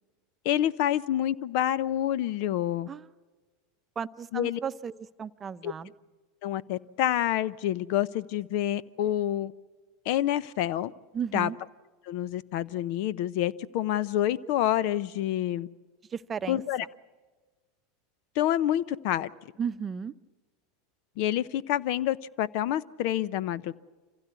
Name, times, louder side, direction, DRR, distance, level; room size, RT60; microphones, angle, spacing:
voice 1, 0.4-2.9 4.3-4.6 5.6-5.7 6.4-9.5 10.1-10.9 11.3-11.5 12.1-15.7 16.5-16.8 18.4-19.3 21.2-23.7, left 12 dB, 60° left, 19 dB, 0.7 m, -28 dB
voice 2, 4.0-5.9 11.1-11.6 16.1-16.6 19.6-20.1, right 7 dB, 25° right, 13 dB, 0.7 m, -34 dB
26.0 x 16.0 x 8.3 m, 1.3 s
hypercardioid pair, 105°, 0 cm